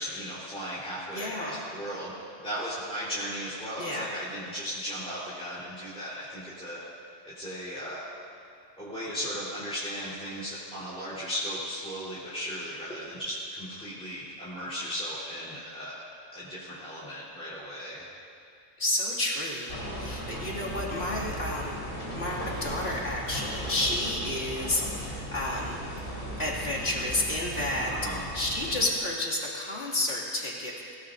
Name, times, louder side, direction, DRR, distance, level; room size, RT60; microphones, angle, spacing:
voice 1, 0.0-2.1 2.4-6.8 7.4-8.0 8.8-16.0 16.3-18.1 27.9-28.2, equal, 5° left, -11 dB, 3.8 m, -36 dB
voice 2, 1.1-1.6 3.8-4.1 18.8-21.8 22.1-25.8 26.4-27.9 28.3-30.9, left 1 dB, 50° left, -4 dB, 2.9 m, -31 dB
sound 1, 19.7-28.9, equal, 80° left, 4.7 m, -37 dB
24.5 x 17.5 x 2.7 m, 2.6 s
omnidirectional pair, 1.3 m